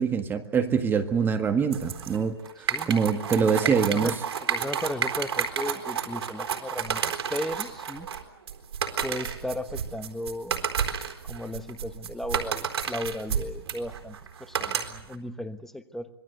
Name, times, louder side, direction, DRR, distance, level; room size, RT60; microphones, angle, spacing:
voice 1, 0.0-4.1, right 6 dB, 15° right, 7 dB, 1.7 m, -25 dB
sound 1, 1.7-15.1, right 7 dB, 85° right, 4.1 m, -31 dB
voice 2, 3.2-4.1 4.4-8.1 9.0-10.6 11.2-16.1, left 1 dB, ahead, 10 dB, 1.2 m, -35 dB
26.0 x 21.5 x 8.1 m, 0.74 s
hypercardioid pair, 150°, 13 cm